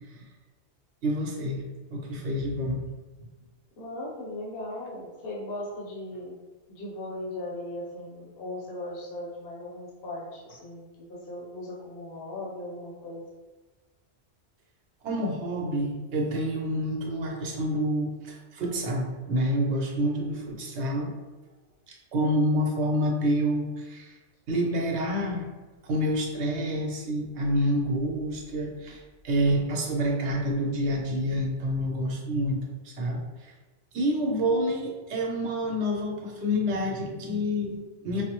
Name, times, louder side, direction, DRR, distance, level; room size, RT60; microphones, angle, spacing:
voice 1, 1.0-1.6 1.9-2.8 15.0-21.1 21.9-24.2 24.5-25.5 25.8-33.5 33.9-38.2, equal, 80° right, 0 dB, 1.0 m, -28 dB
voice 2, 3.8-6.4 6.7-13.2, left 1 dB, 60° left, -4 dB, 1.0 m, -38 dB
5.1 x 2.0 x 2.9 m, 1.3 s
omnidirectional pair, 1.1 m